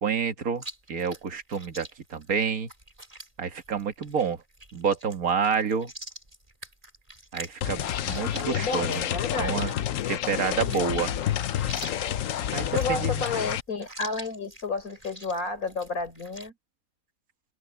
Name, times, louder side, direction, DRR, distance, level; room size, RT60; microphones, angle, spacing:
voice 1, 0.0-0.6 0.9-2.7 3.4-4.4 4.7-5.9 7.3-9.0 9.4-9.7 10.1-11.1 12.5-13.3, right 6 dB, 85° right, 2.0 m, -28 dB
Chewing mastication, 0.5-16.5, right 1 dB, 25° right, 4.5 m, -46 dB
sound 1, 7.6-13.6, left 11 dB, 70° left, 1.1 m, -29 dB
voice 2, 8.3-9.7 12.7-16.5, left 3 dB, 85° left, 4.6 m, -31 dB
open air
omnidirectional pair, 1.5 m